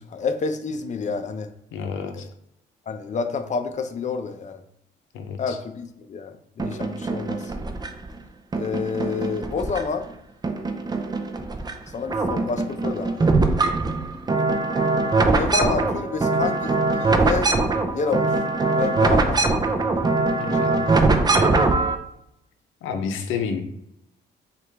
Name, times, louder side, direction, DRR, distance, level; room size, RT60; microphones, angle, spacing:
voice 1, 0.0-1.5 2.9-4.6 5.4-7.5 8.6-10.1 11.9-13.4 15.3-17.5 18.0-18.4 18.7-19.4, left 5 dB, 35° left, 7 dB, 0.5 m, -28 dB
voice 2, 1.7-2.2 5.1-5.6 20.4-21.0 22.8-23.6, left 6 dB, 90° left, 5 dB, 0.6 m, -30 dB
sound 1, 6.6-8.1 8.5-10.1 10.4-11.7 12.0-22.0, right 3 dB, 20° right, 0.4 m, -22 dB
4.8 x 2.5 x 3.4 m, 0.78 s
cardioid pair, 90°, 20 cm